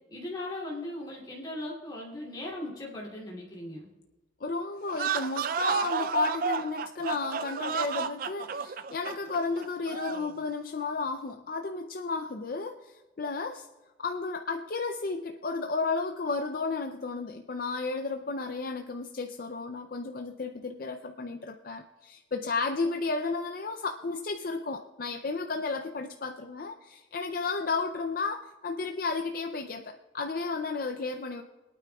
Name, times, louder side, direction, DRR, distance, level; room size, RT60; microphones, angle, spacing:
voice 1, 0.1-3.9, left 1 dB, 20° left, -5 dB, 2.7 m, -38 dB
voice 2, 4.4-13.7 14.0-31.4, left 4 dB, 45° left, 5 dB, 0.5 m, -33 dB
sound 1, 4.9-10.3, right 6 dB, 45° right, 0.3 m, -32 dB
25.0 x 9.1 x 2.3 m, 1.2 s
head